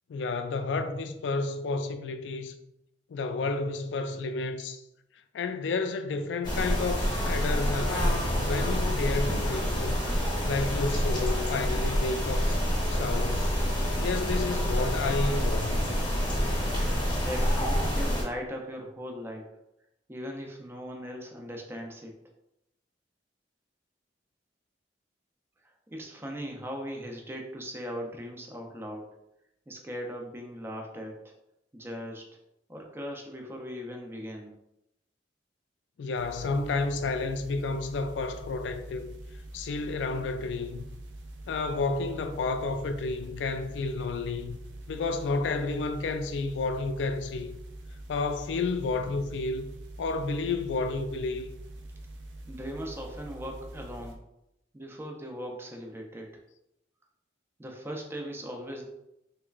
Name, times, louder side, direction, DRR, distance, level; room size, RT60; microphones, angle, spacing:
voice 1, 0.1-2.6 3.1-4.8 5.3-10.0 10.4-12.6 12.9-13.5 14.0-15.9 36.0-39.1 39.5-40.8 41.5-44.6 44.9-47.5 48.1-49.7 50.0-51.5, left 3 dB, 80° left, 0.3 m, -31 dB
sound 1, 6.4-18.2, equal, 25° left, 0.8 m, -27 dB
voice 2, 16.8-19.6 20.1-22.1 25.9-29.1 29.7-31.3 31.7-32.3 32.7-34.5 52.5-54.2 54.7-56.3 57.6-58.9, equal, 15° right, 0.4 m, -39 dB
sound 2, 36.1-54.2, right 1 dB, 85° right, 0.5 m, -44 dB
3.2 x 2.9 x 2.3 m
head